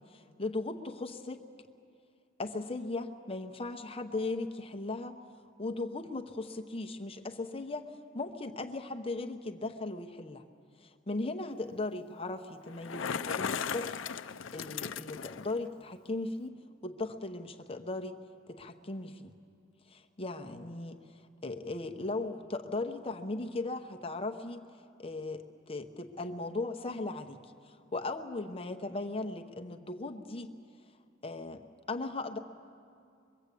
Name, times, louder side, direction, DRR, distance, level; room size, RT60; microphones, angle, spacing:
voice 1, 0.0-1.5 2.4-5.2 5.6-10.4 10.8-13.9 14.5-18.2 18.5-19.3 19.9-21.0 21.4-24.6 25.0-30.5 31.2-32.4, left 2 dB, 30° left, 4 dB, 0.9 m, -38 dB
Bicycle, 12.7-15.5, left 7 dB, 75° left, 0.6 m, -37 dB
24.0 x 22.5 x 8.4 m, 2.4 s
head